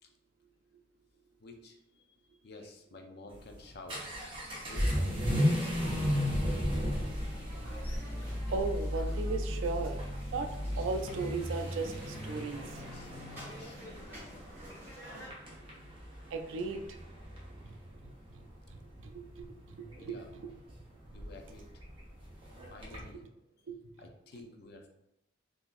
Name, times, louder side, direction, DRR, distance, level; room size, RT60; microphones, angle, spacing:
voice 1, 1.4-4.0 4.6-5.8 6.6-7.0 12.9-14.8 20.0-20.3 21.1-21.7 22.7-23.2 24.0-24.9, left 2 dB, 55° left, 4 dB, 0.5 m, -52 dB
Vehicle / Accelerating revving vroom, 3.3-23.1, equal, 25° right, 0.7 m, -35 dB
Bowed string instrument, 5.8-9.1, left 1 dB, 80° left, 1.0 m, -47 dB
sound 1, 6.9-15.3, equal, 10° right, 1.5 m, -51 dB
voice 2, 8.5-10.0 10.3-12.6 16.3-16.8 17.6-17.8 18.0-18.4 18.7-20.5 23.7-23.8, right 4 dB, 75° right, 6 dB, 0.4 m, -37 dB
3.7 x 2.6 x 2.4 m, 0.84 s
head